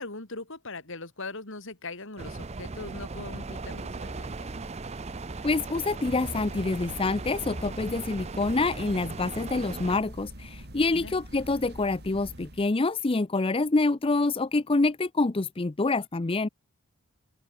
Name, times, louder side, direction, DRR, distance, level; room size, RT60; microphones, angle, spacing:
voice 1, 0.0-4.5 10.9-11.2, left 3 dB, 60° left, 3.5 m, -40 dB
sound 1, 2.2-10.0, right 3 dB, 30° right, 0.6 m, -38 dB
sound 2, 2.3-11.2, equal, 15° right, 3.6 m, -49 dB
voice 2, 5.4-16.5, left 3 dB, 25° left, 0.6 m, -26 dB
sound 3, 6.0-12.7, right 1 dB, 50° right, 4.3 m, -44 dB
open air
head